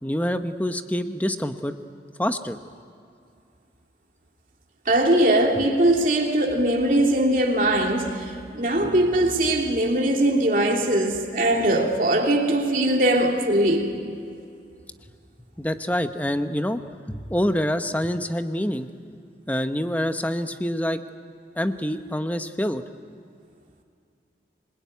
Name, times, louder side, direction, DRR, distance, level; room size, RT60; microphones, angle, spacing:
voice 1, 0.0-1.7 2.2-2.6 15.6-18.9 19.5-21.0 21.6-22.8, equal, 10° left, 0.9 m, -26 dB
voice 2, 4.9-14.0, right 1 dB, 50° right, 3.0 m, -21 dB
26.0 x 21.5 x 9.5 m
head